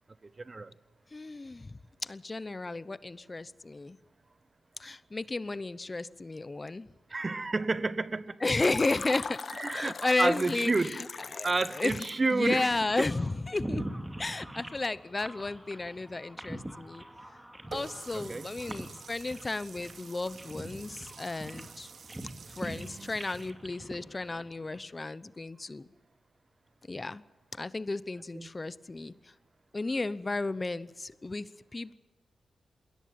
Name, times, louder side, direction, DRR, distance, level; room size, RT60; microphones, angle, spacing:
voice 1, 0.4-0.7 7.1-8.4 9.6-11.0 11.4-12.8 18.1-18.5 22.6-23.2 28.3-28.5, right 3 dB, 40° right, 0.9 m, -30 dB
voice 2, 1.1-4.0 4.8-6.9 8.4-9.4 9.7-11.1 11.3-11.5 11.7-12.1 12.3-13.9 14.2-17.0 17.7-21.9 22.5-25.8 26.9-27.2 27.5-29.3 29.7-31.9, left 2 dB, 30° left, 0.8 m, -33 dB
Fill (with liquid), 8.5-12.3, left 5 dB, 55° left, 1.0 m, -40 dB
sound 1, 12.4-24.8, right 1 dB, 10° right, 2.4 m, -43 dB
Water tap faucet, 17.7-23.5, right 5 dB, 65° right, 1.1 m, -49 dB
21.5 x 17.0 x 8.7 m
cardioid pair, 60°, 0 cm